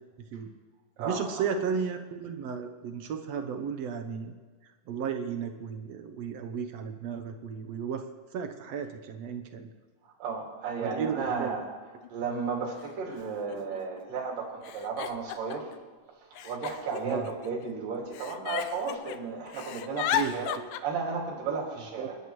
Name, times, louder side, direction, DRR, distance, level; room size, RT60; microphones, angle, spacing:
voice 1, 1.0-4.3 4.9-8.0 8.3-9.7 10.8-11.5 17.0-17.3 20.1-20.7 22.0-22.1, right 6 dB, 70° right, 7 dB, 1.7 m, -34 dB
voice 2, 10.2-11.6 12.1-15.7 16.4-20.5 20.8-22.2, right 5 dB, 85° right, -2 dB, 4.1 m, -33 dB
Giggle, 12.0-12.1 13.1-13.2 13.5-14.0 14.6-15.7 16.4-17.7 18.1-19.2 19.5-20.8, left 11 dB, 90° left, 2.3 m, -34 dB
29.5 x 11.0 x 3.2 m, 1.5 s
omnidirectional pair, 3.8 m